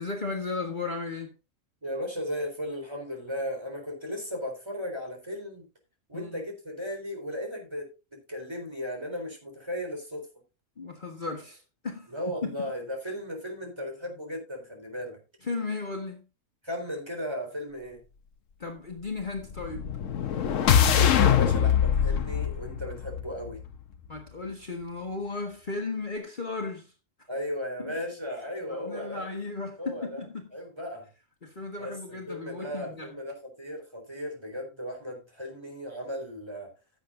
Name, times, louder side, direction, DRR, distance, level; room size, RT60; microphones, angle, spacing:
voice 1, 0.0-1.3 6.1-6.4 10.8-12.1 12.6-12.7 15.4-16.3 18.6-19.9 24.1-26.9 27.8-27.9 28.7-30.5 31.4-33.1, left 3 dB, 40° left, 1.6 m, -35 dB
voice 2, 1.8-5.7 6.1-10.3 12.1-15.2 16.6-18.0 20.9-23.6 27.3-29.3 29.8-30.2 30.5-31.1 31.8-36.7, equal, 20° right, 4.1 m, -36 dB
sound 1, 19.5-23.7, left 8 dB, 75° left, 1.2 m, -23 dB
16.0 x 8.2 x 2.6 m
omnidirectional pair, 1.4 m